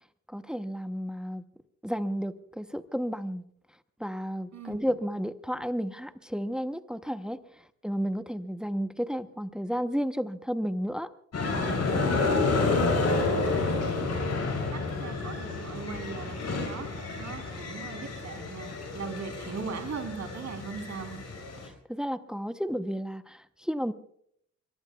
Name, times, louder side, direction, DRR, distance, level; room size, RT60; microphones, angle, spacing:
voice 1, 0.3-1.4 1.8-3.4 4.0-11.1 21.9-23.9, equal, 5° right, 10 dB, 0.8 m, -32 dB
voice 2, 4.5-5.0 11.9-12.3 12.5-14.3 14.7-16.9 17.2-21.2, right 5 dB, 70° right, 4 dB, 3.5 m, -40 dB
sound 1, 11.3-21.7, left 3 dB, 60° left, 6.1 m, -30 dB
23.5 x 22.5 x 2.3 m, 0.67 s
cardioid pair, 85°, 29 cm